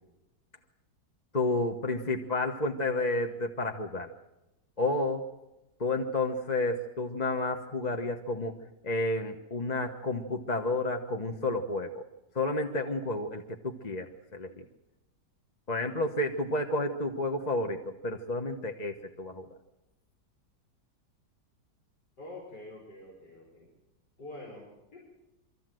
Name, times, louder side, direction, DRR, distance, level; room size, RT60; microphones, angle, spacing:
voice 1, 1.3-4.1 4.8-5.2 5.8-8.5 8.8-12.0 12.3-14.6 15.7-19.4, left 2 dB, 30° left, 4 dB, 1.0 m, -31 dB
voice 2, 22.2-23.7 24.2-25.0, left 2 dB, 70° left, -4 dB, 5.7 m, -46 dB
25.5 x 14.0 x 7.7 m, 0.99 s
omnidirectional pair, 1.9 m